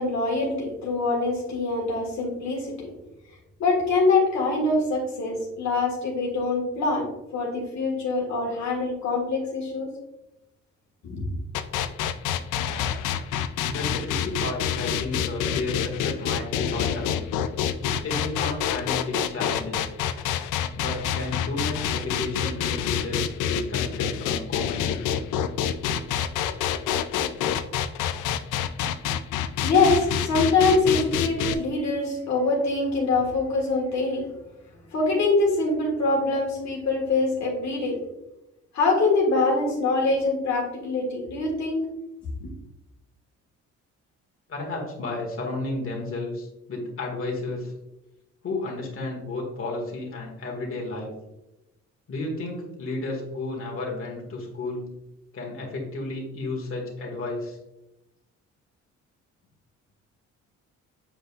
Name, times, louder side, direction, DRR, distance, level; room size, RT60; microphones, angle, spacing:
voice 1, 0.0-2.9 3.6-7.1 7.3-9.9 11.0-11.2 29.6-34.2 34.9-38.0 38.7-41.8 42.4-42.5, left 3 dB, 65° left, -1 dB, 1.7 m, -24 dB
sound 1, 11.5-31.5, left 9 dB, 90° left, 0.5 m, -27 dB
voice 2, 13.7-17.2 18.0-19.9 20.8-25.2 44.5-47.7 48.4-51.1 52.1-54.9 55.3-57.6, left 2 dB, 45° left, -1 dB, 1.8 m, -32 dB
7.7 x 5.1 x 2.4 m, 0.92 s
cardioid pair, 90°, 30 cm